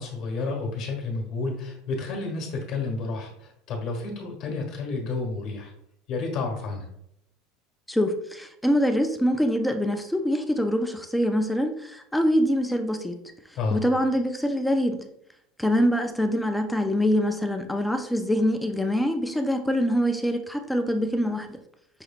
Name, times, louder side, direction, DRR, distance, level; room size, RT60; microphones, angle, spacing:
voice 1, 0.0-5.7 6.1-6.9 13.5-13.8, left 3 dB, 40° left, 1 dB, 1.2 m, -30 dB
voice 2, 7.9-13.2 13.7-15.0 15.6-21.6, equal, 5° left, 6 dB, 0.3 m, -24 dB
5.9 x 3.1 x 2.4 m, 0.74 s
cardioid pair, 165°, 0 cm